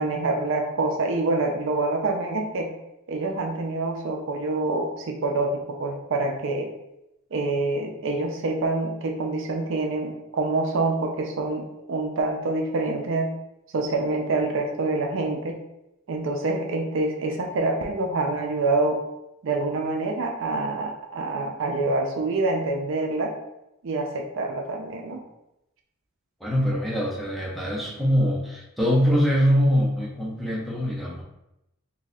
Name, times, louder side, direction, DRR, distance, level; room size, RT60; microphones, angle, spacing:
voice 1, 0.0-2.7 3.1-6.7 7.3-13.3 13.7-15.6 16.1-19.0 19.4-23.3 23.8-25.2, right 2 dB, 65° right, 2 dB, 0.5 m, -26 dB
voice 2, 26.4-31.2, equal, ahead, -5 dB, 0.7 m, -23 dB
2.7 x 2.3 x 4.1 m, 0.87 s
head